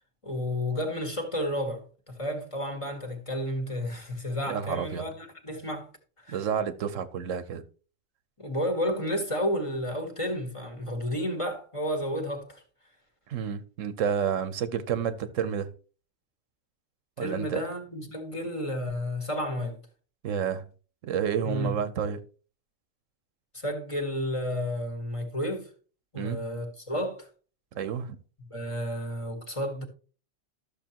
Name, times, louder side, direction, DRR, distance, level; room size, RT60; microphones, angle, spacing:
voice 1, 0.2-5.9 6.2-6.4 8.4-12.6 17.2-19.8 21.4-21.7 23.5-25.7 26.1-27.3 28.5-29.8, equal, 25° left, 1.5 m, -31 dB
voice 2, 4.5-5.0 6.3-7.6 13.3-15.7 17.2-17.6 20.2-20.6 21.0-22.2 26.1-26.4 27.8-28.2, right 7 dB, 90° right, 1.2 m, -30 dB
12.5 x 6.7 x 2.9 m
omnidirectional pair, 1.3 m